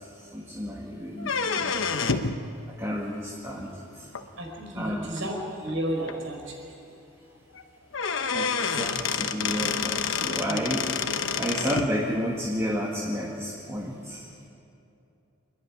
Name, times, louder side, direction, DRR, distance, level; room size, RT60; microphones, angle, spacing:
voice 1, 0.3-2.1 2.8-3.7 4.7-5.1 8.3-11.0 11.4-14.2, equal, 15° right, -3 dB, 1.9 m, -31 dB
sound 1, 1.2-2.4 4.1-4.2 5.2-5.3 5.7-5.8 6.1-6.2 7.5-7.6 7.9-11.9, left 5 dB, 70° left, 0.9 m, -28 dB
voice 2, 4.4-6.6 10.5-10.7, right 1 dB, 65° right, 1 dB, 5.1 m, -32 dB
28.0 x 11.0 x 9.9 m, 2.7 s
head